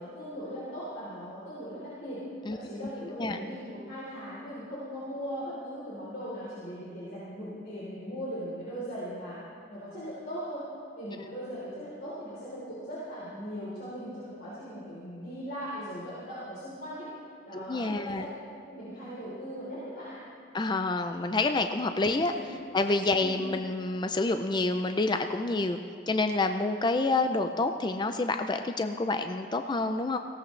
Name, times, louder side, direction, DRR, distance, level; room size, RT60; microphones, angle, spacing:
voice 1, 0.0-2.2 2.5-9.4 9.7-10.6 11.0-17.1 17.5-18.3 18.7-20.2 22.2-22.5 22.8-22.9 23.2-23.5, equal, 50° left, -9 dB, 3.5 m, -39 dB
voice 2, 17.5-18.3 20.5-22.3 22.7-25.8 26.1-30.2, left 3 dB, 20° left, 7 dB, 0.4 m, -28 dB
19.0 x 16.5 x 3.2 m, 2.3 s
head